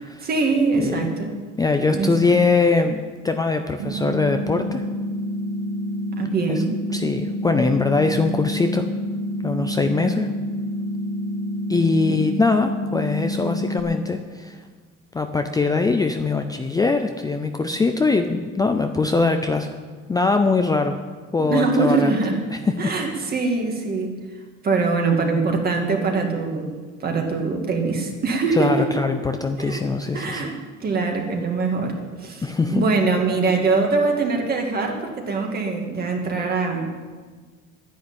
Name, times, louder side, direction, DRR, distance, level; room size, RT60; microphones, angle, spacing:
voice 1, 0.2-1.3 1.9-2.4 6.2-6.7 21.4-22.4 22.8-24.2 24.6-26.7 27.0-28.9 29.6-29.8 30.1-37.0, right 4 dB, 30° right, 2 dB, 2.0 m, -23 dB
voice 2, 0.8-1.1 1.6-4.9 6.5-6.6 6.9-8.9 9.4-10.3 11.7-14.6 15.1-19.8 20.1-21.0 21.3-22.1 22.5-23.2 28.5-30.6 32.4-32.9, left 3 dB, 10° left, 6 dB, 0.5 m, -22 dB
sound 1, 3.8-13.8, equal, 85° right, 1.8 m, -28 dB
11.5 x 10.5 x 8.8 m, 1.5 s
cardioid pair, 170°, 32 cm